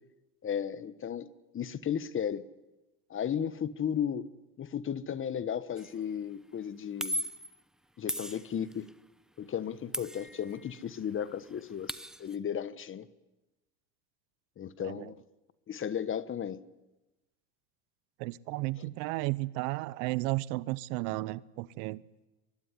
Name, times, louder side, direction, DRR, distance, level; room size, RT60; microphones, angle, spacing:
voice 1, 0.4-1.3 1.5-2.5 3.1-4.3 4.6-7.2 8.0-8.9 9.4-13.1 14.6-15.2 15.7-16.6 18.8-18.9, left 8 dB, 25° left, 1.2 m, -34 dB
sound 1, 5.8-6.0 7.0-7.6 8.1-8.9 9.9-10.8 11.1-11.2 11.5-12.4, equal, ahead, 0.9 m, -37 dB
voice 2, 18.2-22.0, right 20 dB, 65° right, 1.1 m, -33 dB
24.0 x 22.5 x 9.9 m
supercardioid pair, 115°, 47 cm